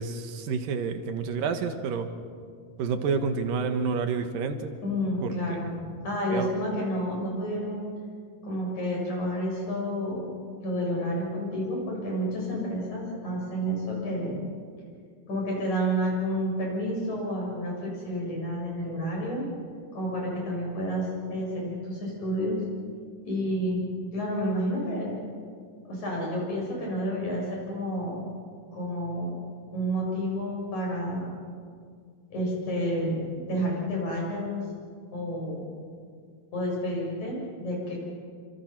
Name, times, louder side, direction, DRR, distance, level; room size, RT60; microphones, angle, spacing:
voice 1, 0.0-2.1 2.8-4.7 5.2-5.3 6.3-6.5, right 5 dB, 75° right, 7 dB, 3.0 m, -29 dB
voice 2, 4.8-7.9 8.4-14.4 15.3-19.5 19.9-22.6 23.2-25.2 25.8-28.2 28.7-29.4 29.7-31.3 32.3-34.6 35.1-35.7 36.5-38.0, equal, 55° left, -2 dB, 8.3 m, -30 dB
27.5 x 26.0 x 6.0 m, 2.1 s
omnidirectional pair, 4.0 m